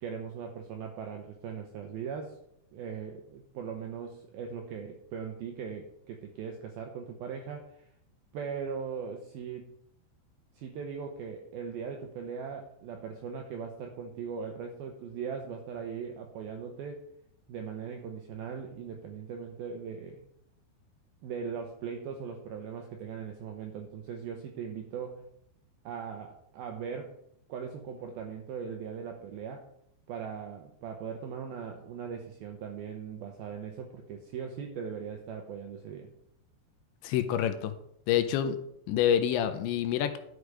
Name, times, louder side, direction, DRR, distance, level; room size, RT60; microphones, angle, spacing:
voice 1, 0.0-2.4 2.7-7.9 8.3-9.7 10.5-17.0 17.5-20.2 21.2-25.2 25.8-27.2 27.5-29.7 30.1-36.1, right 6 dB, 80° right, 3 dB, 2.2 m, -39 dB
voice 2, 37.0-37.7 38.1-38.6 38.9-40.2, left 10 dB, 80° left, 9 dB, 2.9 m, -27 dB
12.0 x 6.5 x 4.8 m, 0.72 s
omnidirectional pair, 5.4 m